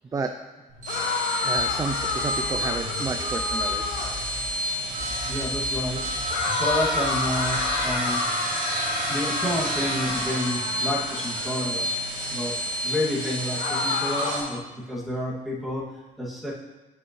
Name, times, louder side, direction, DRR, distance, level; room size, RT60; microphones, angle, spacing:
sound 1, 0.7-14.4, equal, 50° right, 2.2 m, -29 dB
sound 2, 0.9-4.3 6.3-11.6 13.6-14.6, left 4 dB, 65° left, 1.0 m, -30 dB
voice 1, 1.4-4.0, right 4 dB, 20° right, 6 dB, 0.4 m, -31 dB
sound 3, 1.6-4.6 5.0-8.0, left 7 dB, 35° left, 0.6 m, -40 dB
voice 2, 5.3-6.0 6.5-8.2 9.1-11.9 12.3-12.5 12.8-15.9 16.2-16.5, equal, ahead, -6 dB, 2.0 m, -29 dB
9.7 x 5.4 x 3.1 m, 1.1 s
cardioid pair, 110°, 17 cm